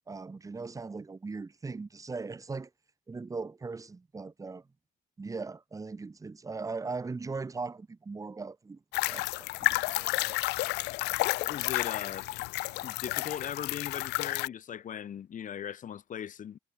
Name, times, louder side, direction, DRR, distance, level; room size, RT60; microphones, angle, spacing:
voice 1, 0.1-2.7 3.1-4.6 5.2-8.8 9.1-10.4, right 4 dB, 20° right, 1.7 m, -39 dB
sound 1, 8.9-14.5, left 21 dB, 90° left, 0.9 m, -31 dB
voice 2, 11.5-12.3 12.8-16.6, left 9 dB, 50° left, 5.6 m, -39 dB
cardioid pair, 110°, 17 cm